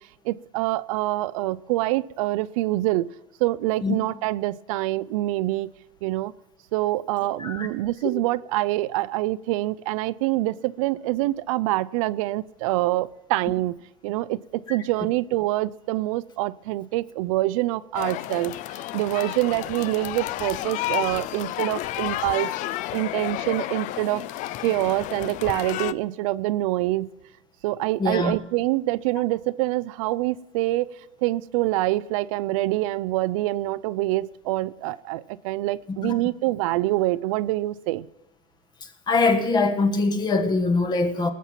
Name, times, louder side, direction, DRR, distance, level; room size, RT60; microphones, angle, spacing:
voice 1, 0.2-3.1 3.4-5.7 6.0-6.3 6.7-22.5 22.9-24.2 24.6-27.1 27.6-38.1, right 17 dB, 90° right, 17 dB, 0.4 m, -25 dB
sound 1, 17.9-25.9, left 15 dB, 50° left, 0.4 m, -31 dB
voice 2, 28.0-28.3 36.0-36.1 39.1-41.3, left 3 dB, 25° left, 8 dB, 1.3 m, -22 dB
19.0 x 7.3 x 5.9 m, 0.94 s
supercardioid pair, 130°, 17 cm